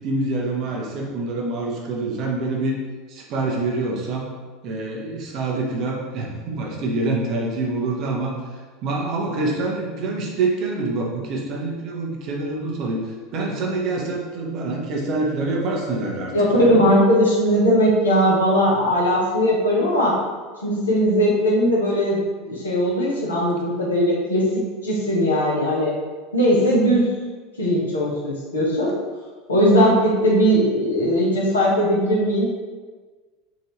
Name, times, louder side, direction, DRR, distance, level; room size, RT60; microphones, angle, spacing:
voice 1, 0.0-2.8 3.1-4.3 4.6-8.3 8.8-13.0 13.3-16.8, right 2 dB, 45° right, -1 dB, 0.8 m, -26 dB
voice 2, 16.3-20.1 20.6-25.9 26.3-27.1 27.6-28.9 29.5-32.5, equal, 75° left, -4 dB, 1.0 m, -19 dB
3.8 x 2.6 x 3.2 m, 1.4 s
figure-of-eight pair, 75°, 0 cm